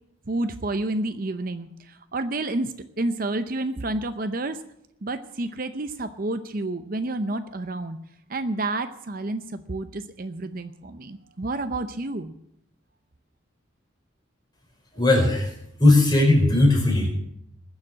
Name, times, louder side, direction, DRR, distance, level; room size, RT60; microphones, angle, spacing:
voice 1, 0.3-4.6 5.0-8.0 8.3-12.3, right 2 dB, 45° right, 9 dB, 0.7 m, -30 dB
voice 2, 14.9-15.5 15.8-17.1, left 2 dB, 20° left, 0 dB, 4.9 m, -18 dB
20.5 x 7.4 x 7.6 m, 0.75 s
head